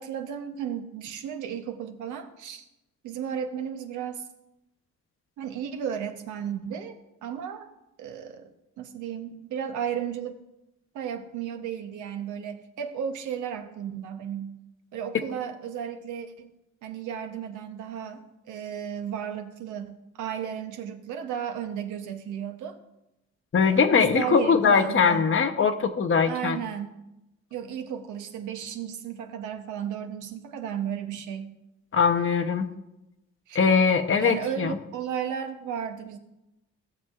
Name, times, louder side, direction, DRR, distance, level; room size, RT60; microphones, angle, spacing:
voice 1, 0.0-2.6 3.0-4.2 5.4-6.9 7.2-7.7 8.0-8.5 8.8-10.4 10.9-14.6 14.9-16.5 16.8-18.2 18.5-22.8 23.6-25.3 26.3-26.9 27.5-31.5 33.5-33.6 34.2-36.2, right 8 dB, 90° right, 7 dB, 0.8 m, -34 dB
voice 2, 23.5-26.6 31.9-32.7 33.5-34.8, left 5 dB, 45° left, 6 dB, 0.8 m, -21 dB
15.0 x 6.5 x 2.4 m, 0.92 s
cardioid pair, 70°, 30 cm